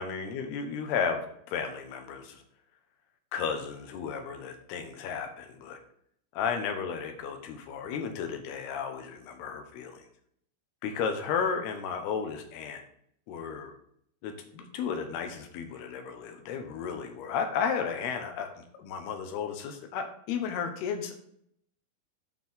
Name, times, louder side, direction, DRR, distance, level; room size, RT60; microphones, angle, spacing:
voice 1, 0.0-2.4 3.3-5.8 6.3-10.0 10.8-12.8 13.3-13.7 14.2-21.1, left 6 dB, 85° left, 5 dB, 3.1 m, -33 dB
12.5 x 4.5 x 3.6 m, 0.68 s
omnidirectional pair, 4.5 m